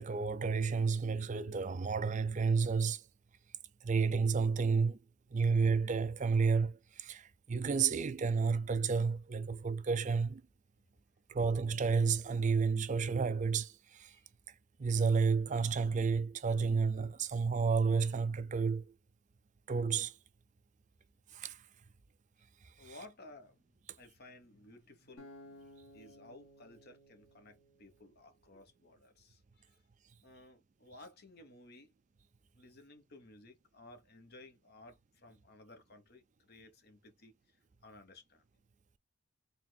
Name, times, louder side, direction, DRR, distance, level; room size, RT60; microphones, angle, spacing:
voice 1, 0.0-3.0 3.8-5.0 5.3-10.4 11.3-14.1 14.8-18.8 19.7-20.1 21.3-21.6, right 5 dB, 35° right, 0.4 m, -31 dB
voice 2, 22.8-29.8 30.2-31.9 32.5-38.4, left 2 dB, 45° left, 1.2 m, -57 dB
Acoustic guitar, 25.2-28.4, left 1 dB, 75° left, 2.1 m, -57 dB
4.2 x 3.5 x 2.3 m
head